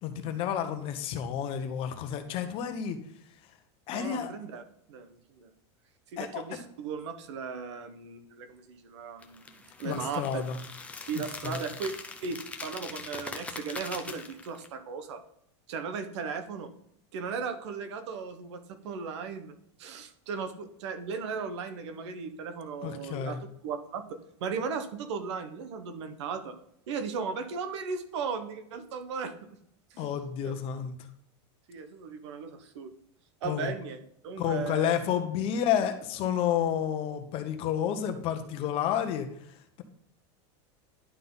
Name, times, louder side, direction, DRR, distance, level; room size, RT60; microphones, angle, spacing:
voice 1, 0.0-3.0 3.9-4.3 6.2-6.4 9.8-10.6 11.1-11.6 22.8-23.4 30.0-31.0 33.4-33.7 34.4-39.3, left 9 dB, 40° left, 8 dB, 1.0 m, -30 dB
voice 2, 3.9-4.6 4.9-5.5 6.1-10.4 11.1-11.9 12.2-15.2 15.7-16.7 17.1-23.4 23.6-26.6 26.9-29.3 29.9-30.0 30.4-30.5 31.7-32.9 33.4-34.9, right 5 dB, 75° right, 9 dB, 1.1 m, -36 dB
sound 1, 9.2-14.7, left 4 dB, 10° left, 0.7 m, -42 dB
11.0 x 3.8 x 3.9 m, 0.71 s
supercardioid pair, 150°, 15 cm